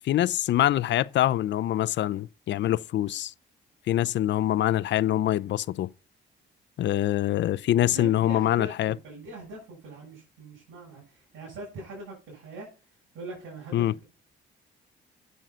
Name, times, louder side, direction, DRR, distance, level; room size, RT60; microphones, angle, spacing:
voice 1, 0.0-3.3 3.9-5.9 6.8-9.0 13.7-13.9, left 13 dB, 65° left, 0.5 m, -24 dB
voice 2, 7.8-12.7 13.1-14.0, right 2 dB, 80° right, 7.3 m, -42 dB
9.2 x 7.5 x 5.6 m
cardioid pair, 90°, 20 cm